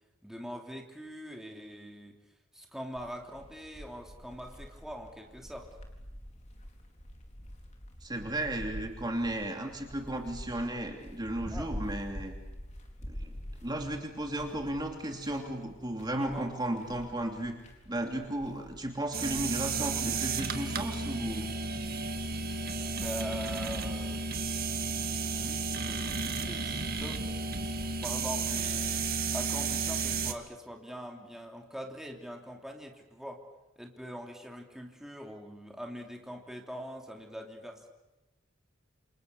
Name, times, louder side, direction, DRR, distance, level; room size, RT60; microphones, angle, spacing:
voice 1, 0.2-2.1 2.5-5.7 11.5-11.7 16.2-16.5 23.0-24.5 25.3-27.2 28.0-29.0 29.3-33.4 33.8-37.9, equal, ahead, 1 dB, 3.1 m, -43 dB
sound 1, 2.9-21.5, equal, 35° left, 4.4 m, -47 dB
voice 2, 8.0-12.4 13.1-17.6 17.9-21.5, right 1 dB, 20° right, 3 dB, 2.9 m, -34 dB
sound 2, 19.1-30.3, right 4 dB, 50° right, 2.1 m, -33 dB
29.0 x 27.5 x 7.0 m, 1.0 s
head